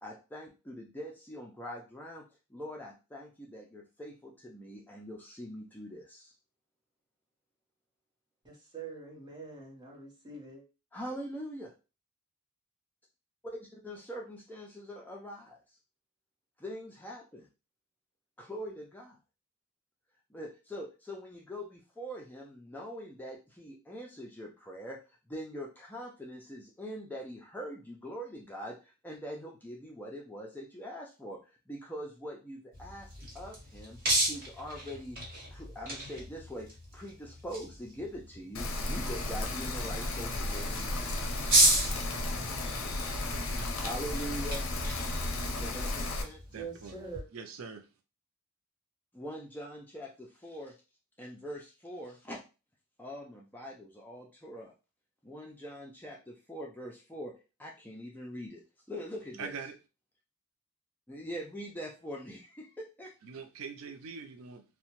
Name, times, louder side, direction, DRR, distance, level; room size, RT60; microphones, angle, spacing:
voice 1, 0.0-2.2 2.5-6.3 10.9-11.7 13.4-15.6 16.6-17.5 18.4-19.2 20.3-25.0 25.3-31.4 31.7-34.0 34.3-35.2 35.5-36.7 36.9-41.2 43.8-44.6 45.6-46.4 49.1-50.7 51.2-52.4 53.0-54.7 55.2-57.3 57.6-58.6 58.9-59.5 61.1-63.1, equal, 10° left, 0.3 m, -43 dB
voice 2, 8.4-10.6 46.5-47.3, right 4 dB, 20° right, 0.8 m, -44 dB
sound 1, 32.7-47.2, right 1 dB, 40° right, 1.2 m, -34 dB
Rain, 38.5-46.2, left 2 dB, 65° left, 0.5 m, -34 dB
voice 3, 46.5-47.0 47.3-47.8 59.4-59.7 63.2-64.6, right 5 dB, 70° right, 0.4 m, -43 dB
2.7 x 2.1 x 2.9 m
head